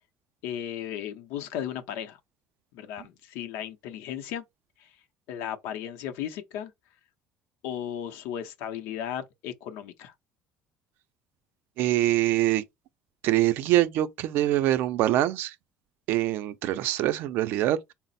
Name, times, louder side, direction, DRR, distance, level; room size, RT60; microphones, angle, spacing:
voice 1, 0.4-2.2 2.7-4.4 4.8-5.0 5.3-6.7 7.6-10.1, left 10 dB, 85° left, 0.6 m, -35 dB
voice 2, 11.8-12.6 13.2-15.5 16.1-17.9, right 14 dB, 65° right, 0.4 m, -24 dB
4.0 x 2.0 x 4.0 m
cardioid pair, 155°, 4 cm